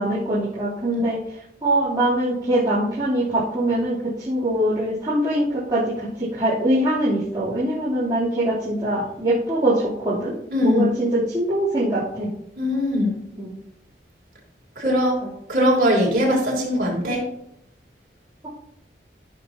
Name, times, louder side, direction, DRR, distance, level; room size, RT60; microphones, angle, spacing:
voice 1, 0.0-10.3 10.6-12.3 13.4-13.5 15.2-15.3, right 1 dB, 25° right, -12 dB, 3.4 m, -23 dB
voice 2, 10.5-10.9 12.6-13.1 14.8-15.2 15.5-17.3, equal, 50° right, -3 dB, 3.6 m, -20 dB
15.5 x 6.8 x 2.9 m, 0.77 s
head